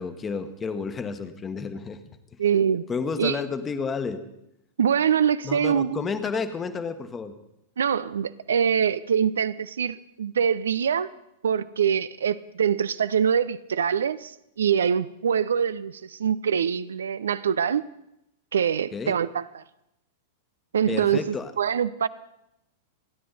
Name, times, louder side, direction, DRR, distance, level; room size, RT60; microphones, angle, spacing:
voice 1, 0.0-2.0 2.9-4.2 5.4-7.3 18.9-19.1 20.9-21.5, left 5 dB, 20° left, 10 dB, 1.3 m, -31 dB
voice 2, 2.4-2.9 3.2-3.4 4.8-6.1 7.8-11.1 11.4-17.9 18.5-19.6 20.7-22.1, right 8 dB, 70° right, 16 dB, 0.4 m, -24 dB
29.0 x 10.0 x 4.1 m, 0.84 s
figure-of-eight pair, 95°, 0 cm